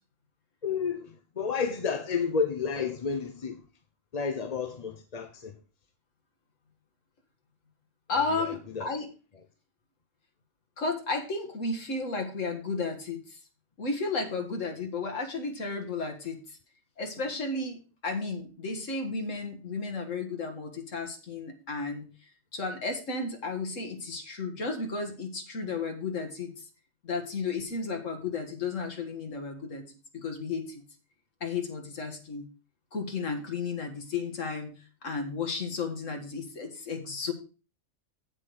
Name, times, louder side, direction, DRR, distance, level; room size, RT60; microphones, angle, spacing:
voice 1, 0.6-3.6 4.1-5.6 8.3-8.9, left 5 dB, 40° left, 0.7 m, -31 dB
voice 2, 8.1-9.1 10.8-13.4 13.8-16.4 17.0-22.1 22.5-26.5 27.0-29.8 30.1-30.8 31.4-32.4 32.9-34.8 35.0-37.3, left 4 dB, 75° left, 2.0 m, -33 dB
8.2 x 7.5 x 4.6 m
omnidirectional pair, 1.3 m